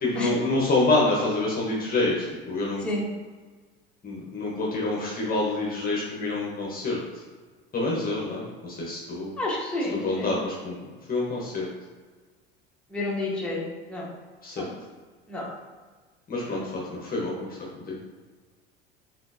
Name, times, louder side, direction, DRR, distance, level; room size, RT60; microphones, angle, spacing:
voice 1, 0.0-2.9 4.0-7.0 7.7-9.3 9.9-10.8 11.1-11.7 14.4-14.7 16.3-17.3 17.9-18.0, left 2 dB, 30° left, -4 dB, 1.1 m, -27 dB
voice 2, 9.4-10.3 12.9-13.6 13.9-14.0 14.6-14.7 15.3-15.4 16.5-16.6, left 2 dB, 5° left, -6 dB, 1.4 m, -29 dB
4.3 x 4.1 x 2.8 m, 1.4 s
hypercardioid pair, 80°, 30 cm